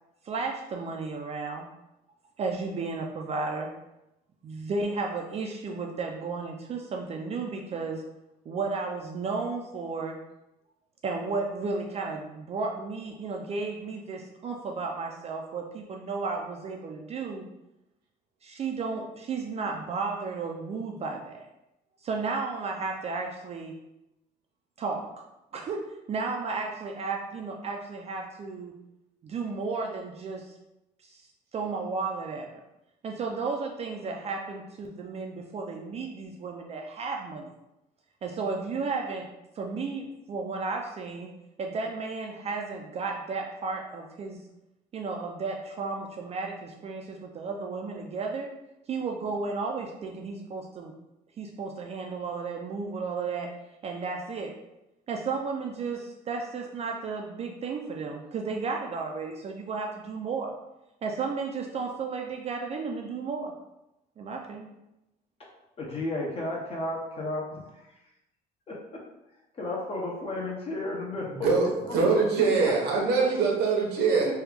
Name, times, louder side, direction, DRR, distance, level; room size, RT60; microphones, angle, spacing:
voice 1, 0.2-1.7 2.4-3.7 4.4-8.0 8.5-10.2 11.0-17.5 18.4-21.5 22.0-23.7 24.8-25.1 25.5-28.7 29.2-30.6 31.0-31.3 31.5-32.6 33.0-37.5 38.2-39.3 39.6-41.3 41.6-44.4 44.9-48.5 48.9-50.9 51.4-53.5 53.8-54.5 55.1-60.5 61.0-63.5 64.2-64.7, right 4 dB, 40° right, 1 dB, 0.4 m, -33 dB
voice 2, 65.8-67.9 68.7-69.0 69.5-71.5 71.8-72.2 72.6-72.7 74.2-74.3, left 2 dB, 35° left, -2 dB, 0.7 m, -33 dB
voice 3, 71.3-71.7 71.9-74.3, right 4 dB, 80° right, 0 dB, 0.9 m, -23 dB
3.3 x 2.3 x 3.3 m, 0.91 s
cardioid pair, 110°, 17 cm